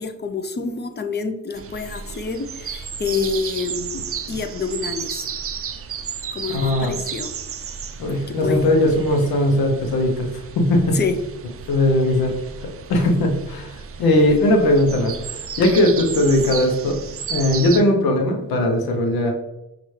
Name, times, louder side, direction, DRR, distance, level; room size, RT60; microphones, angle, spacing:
voice 1, 0.0-4.0 4.3-5.3 6.3-7.3 8.3-8.7 10.9-11.2, left 5 dB, 30° left, 9 dB, 0.5 m, -27 dB
sound 1, 1.6-17.8, right 7 dB, 40° right, 0.5 m, -33 dB
voice 2, 6.5-6.9 8.0-10.3 10.6-11.0 11.7-12.3 12.9-17.0 17.3-19.3, left 1 dB, 90° left, 3 dB, 0.8 m, -19 dB
5.4 x 2.5 x 3.1 m, 0.92 s
supercardioid pair, 55°, 35 cm